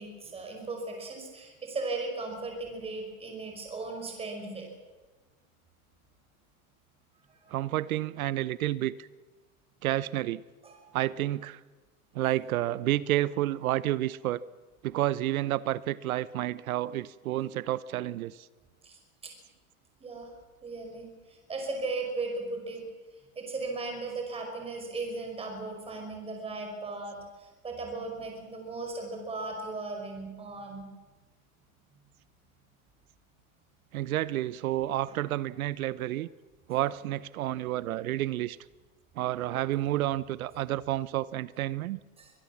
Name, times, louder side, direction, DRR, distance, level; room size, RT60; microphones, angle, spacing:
voice 1, 0.0-4.7 7.3-7.5 10.6-10.8 18.8-19.3 20.0-20.3 20.6-22.8 23.4-30.8 35.1-35.2 42.2-42.3, right 3 dB, 15° right, 3 dB, 5.4 m, -37 dB
voice 2, 7.5-9.1 9.8-10.4 10.9-11.6 12.1-14.4 14.8-18.5 33.9-36.3 36.7-38.6 39.2-42.0, right 14 dB, 75° right, 18 dB, 0.8 m, -30 dB
23.5 x 20.5 x 7.3 m, 1.3 s
supercardioid pair, 150°, 43 cm